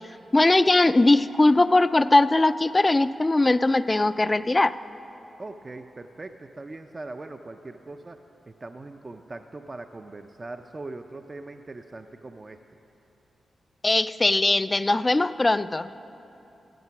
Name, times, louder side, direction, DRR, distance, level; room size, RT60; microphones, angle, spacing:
voice 1, 0.3-4.7 13.8-15.9, left 2 dB, 25° left, 14 dB, 0.3 m, -20 dB
voice 2, 5.4-8.2 8.5-12.6, right 2 dB, 35° right, 6 dB, 0.4 m, -40 dB
14.0 x 7.9 x 5.9 m, 2.9 s
cardioid pair, 55°, 0 cm